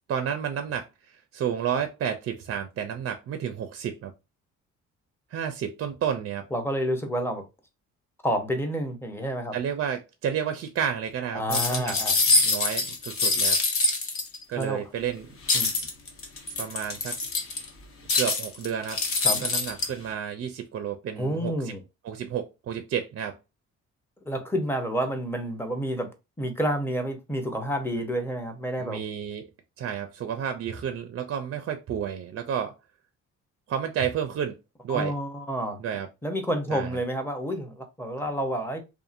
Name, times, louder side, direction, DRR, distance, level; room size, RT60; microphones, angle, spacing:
voice 1, 0.1-4.1 5.3-6.4 9.5-11.9 12.4-13.6 14.5-15.3 16.6-17.2 18.1-19.0 19.4-21.7 22.0-23.3 28.8-29.5 29.8-32.7 33.7-34.6 34.8-35.1 35.8-36.1 36.7-37.0, right 8 dB, 50° right, 0.4 m, -31 dB
voice 2, 6.5-7.4 8.2-9.6 11.3-12.2 14.6-14.8 15.5-15.9 19.2-19.5 21.2-21.8 24.2-26.1 26.4-29.0 34.9-35.8 36.2-38.8, equal, 10° left, 0.7 m, -29 dB
Jiggling Jewelery, 11.5-14.6 15.5-17.7 18.1-19.9, left 3 dB, 45° left, 0.8 m, -25 dB
2.7 x 2.4 x 2.4 m
cardioid pair, 90°, 30 cm